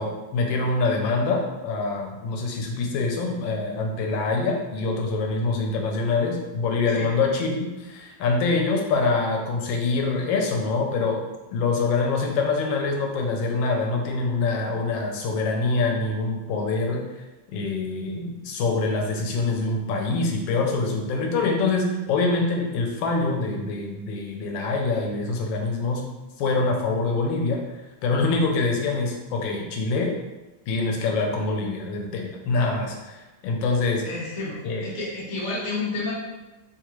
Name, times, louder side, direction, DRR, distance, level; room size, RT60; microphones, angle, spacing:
voice 1, 0.0-11.2 11.5-17.0 17.5-26.0 26.4-27.6 28.0-30.1 30.7-34.0 34.6-34.9, left 3 dB, 85° left, 1 dB, 1.3 m, -25 dB
voice 2, 34.0-36.1, left 3 dB, 45° left, -6 dB, 0.5 m, -30 dB
3.1 x 2.4 x 2.9 m, 1.1 s
omnidirectional pair, 2.0 m